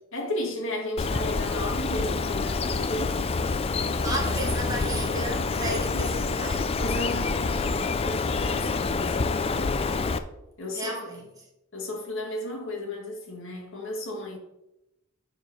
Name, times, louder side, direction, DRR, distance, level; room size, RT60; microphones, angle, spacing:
voice 1, 0.1-3.2 5.6-6.1 6.8-9.5 10.6-10.9 11.7-14.4, left 1 dB, 65° left, 2.0 m, -34 dB
Bird, 1.0-10.2, left 4 dB, 30° left, 0.4 m, -27 dB
voice 2, 3.9-6.7 10.7-11.5, right 2 dB, 15° right, 1.8 m, -33 dB
7.1 x 4.8 x 5.6 m
head